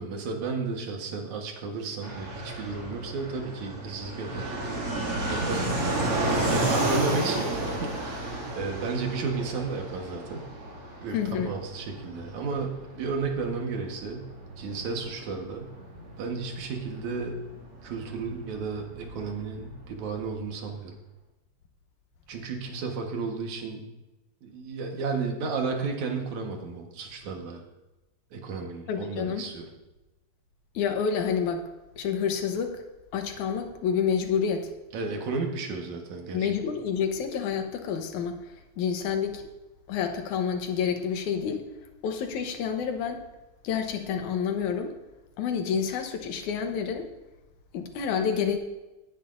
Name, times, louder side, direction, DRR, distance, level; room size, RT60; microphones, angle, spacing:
voice 1, 0.0-4.6 5.3-10.4 11.0-11.2 11.5-14.3 14.6-15.6 16.2-17.4 17.8-20.9 22.3-23.9 24.4-27.6 28.3-29.7 34.9-36.5, right 4 dB, 75° right, 2 dB, 2.7 m, -33 dB
Fixed-wing aircraft airplane, 2.0-20.4, right 1 dB, 50° right, 3.1 m, -33 dB
voice 2, 11.1-11.5 28.9-29.5 30.7-31.7 32.0-32.8 33.1-34.7 36.3-39.4 39.9-41.6 42.0-43.2 43.6-44.9 45.4-47.1 47.7-48.6, left 7 dB, 90° left, 5 dB, 2.5 m, -28 dB
18.0 x 9.9 x 2.6 m, 1.0 s
omnidirectional pair, 3.3 m